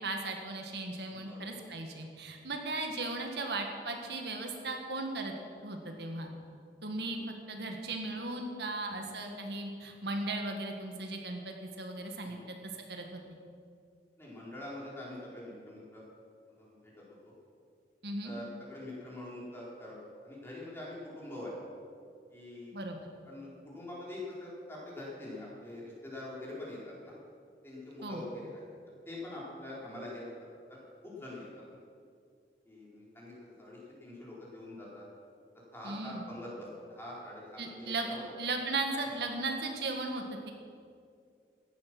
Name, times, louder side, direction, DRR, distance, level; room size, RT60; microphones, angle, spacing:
voice 1, 0.0-5.3 5.6-6.3 6.8-12.5 12.9-13.4 18.0-18.3 22.7-23.0 28.0-28.2 35.8-36.3 37.6-38.1 38.4-40.5, right 2 dB, 70° right, 3 dB, 1.7 m, -37 dB
voice 2, 14.2-16.0 16.6-16.9 18.2-20.0 20.2-21.6 22.3-22.8 23.2-27.1 27.6-28.6 29.1-30.3 30.7-31.6 32.7-35.1 35.7-38.3, left 1 dB, 15° left, -6 dB, 4.1 m, -44 dB
15.5 x 11.5 x 6.1 m, 2.3 s
head